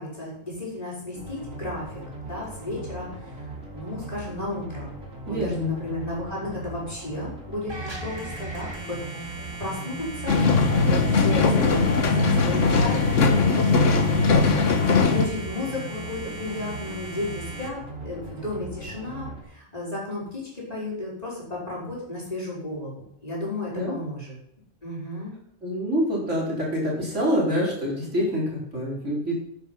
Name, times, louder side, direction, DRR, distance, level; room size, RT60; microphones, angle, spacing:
voice 1, 0.0-3.4 3.7-4.9 5.2-14.7 15.1-24.4 24.8-25.3, left 2 dB, 30° left, -5 dB, 5.7 m, -34 dB
sound 1, 1.1-19.4, right 2 dB, 90° right, 3.2 m, -39 dB
voice 2, 5.3-5.7 23.7-24.0 25.6-29.3, equal, 65° right, -4 dB, 4.9 m, -26 dB
sound 2, 7.7-17.7, right 3 dB, 20° right, 1.7 m, -39 dB
sound 3, 10.3-15.3, left 4 dB, 70° left, 1.5 m, -20 dB
10.5 x 9.9 x 5.8 m, 0.74 s
omnidirectional pair, 1.3 m